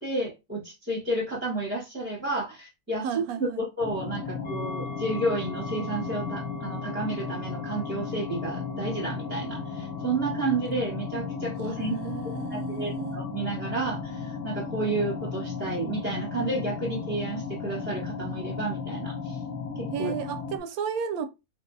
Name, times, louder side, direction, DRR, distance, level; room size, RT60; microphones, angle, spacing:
voice 1, 0.0-12.0 12.5-19.4 19.7-20.1, right 2 dB, 10° right, 0.9 m, -31 dB
voice 2, 3.0-3.6 11.7-13.2 19.9-21.3, right 7 dB, 85° right, 1.0 m, -33 dB
sound 1, 3.8-20.6, left 5 dB, 70° left, 1.0 m, -35 dB
sound 2, 4.4-16.1 16.5-16.6, right 1 dB, 45° left, 0.5 m, -46 dB
3.1 x 2.6 x 2.6 m
omnidirectional pair, 1.5 m